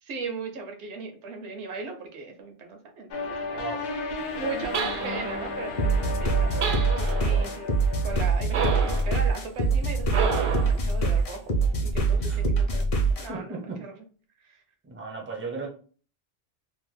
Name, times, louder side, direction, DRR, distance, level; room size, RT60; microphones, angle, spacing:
voice 1, 0.0-3.6 4.1-6.9 7.2-7.7 8.0-11.5 11.8-14.0 14.4-14.6, right 4 dB, 85° right, 1.0 m, -38 dB
sound 1, 3.1-8.2, left 3 dB, 80° left, 0.9 m, -34 dB
voice 2, 3.5-3.9 7.3-7.5 12.2-12.4 13.3-13.8 14.9-15.7, right 4 dB, 15° right, 0.4 m, -36 dB
sound 2, 4.7-5.5 6.6-7.4 8.5-9.1 10.1-10.8, right 5 dB, 60° right, 0.6 m, -29 dB
sound 3, 5.8-13.3, right 3 dB, 50° left, 0.4 m, -24 dB
2.9 x 2.0 x 3.2 m
omnidirectional pair, 1.1 m